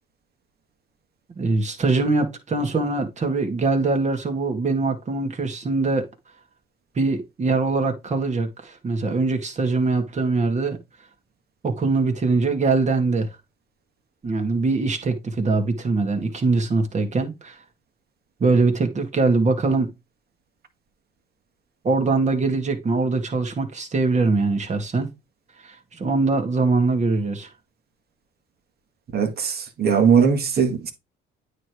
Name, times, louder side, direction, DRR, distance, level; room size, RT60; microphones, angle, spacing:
voice 1, 1.4-6.1 7.0-10.8 11.6-13.3 14.2-17.6 18.4-19.9 21.8-25.1 25.6-27.5, right 3 dB, 35° right, 2.1 m, -22 dB
voice 2, 29.1-30.9, right 6 dB, 50° right, 1.7 m, -19 dB
9.1 x 3.3 x 4.6 m
cardioid pair, 105°, 21 cm